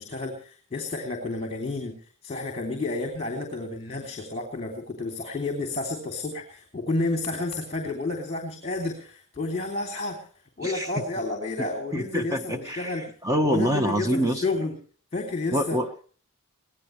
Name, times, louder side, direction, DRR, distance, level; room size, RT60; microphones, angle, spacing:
voice 1, 0.0-1.9 2.2-10.3 10.6-13.1 13.4-14.7 15.1-15.8, left 2 dB, 30° left, 4 dB, 3.2 m, -30 dB
voice 2, 11.9-14.4 15.5-16.0, equal, 15° right, 6 dB, 1.4 m, -26 dB
24.0 x 17.5 x 3.3 m, 0.43 s
head